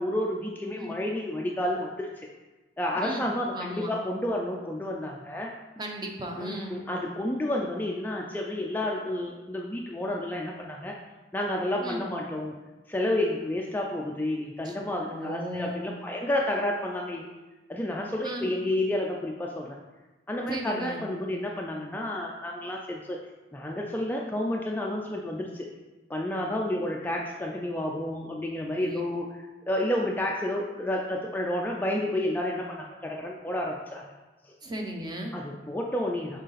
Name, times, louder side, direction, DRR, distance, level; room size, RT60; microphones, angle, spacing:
voice 1, 0.0-2.1 2.8-5.5 6.4-10.9 11.3-12.5 12.9-17.3 17.7-19.8 20.3-23.2 23.5-25.7 26.1-29.3 29.7-34.1 34.4-34.5 35.3-36.4, left 1 dB, 10° left, -1 dB, 0.4 m, -30 dB
voice 2, 3.0-3.9 5.8-6.8 11.8-12.0 14.6-14.7 15.1-15.9 18.2-18.5 20.5-21.0 28.8-29.0 34.6-35.3, right 1 dB, 25° right, 1 dB, 0.8 m, -36 dB
6.5 x 3.9 x 4.1 m, 1.2 s
head